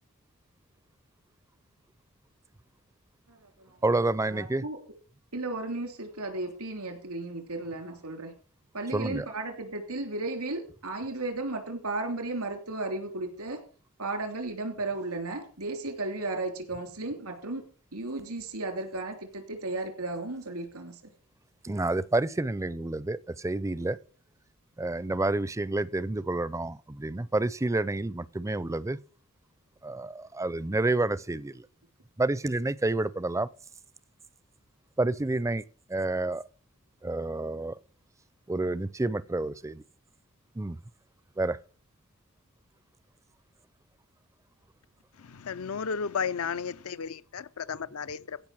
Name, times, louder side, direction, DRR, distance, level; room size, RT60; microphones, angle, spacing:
voice 1, 3.3-3.8 4.3-4.8 5.3-8.3 8.7-13.6 14.0-17.6 17.9-21.1, right 2 dB, 90° right, 3.1 m, -34 dB
voice 2, 3.8-4.7 8.9-9.3 21.6-24.0 24.8-29.0 29.8-31.7 32.2-33.5 35.0-35.6 35.9-36.4 37.0-37.8 38.5-39.8 40.5-40.8 41.4-41.6, right 2 dB, 15° right, 0.5 m, -29 dB
voice 3, 45.2-48.4, left 6 dB, 75° left, 0.6 m, -33 dB
16.0 x 5.7 x 6.1 m
head